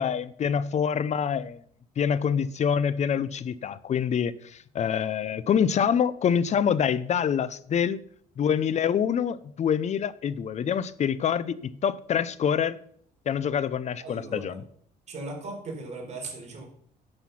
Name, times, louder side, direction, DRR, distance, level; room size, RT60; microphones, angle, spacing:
voice 1, 0.0-1.6 2.0-4.3 4.7-8.0 8.4-12.8 13.3-14.6, left 8 dB, 45° left, 0.7 m, -26 dB
voice 2, 14.0-14.6 15.1-16.7, right 2 dB, 40° right, 4.3 m, -38 dB
10.5 x 7.7 x 5.9 m
cardioid pair, 110°, 17 cm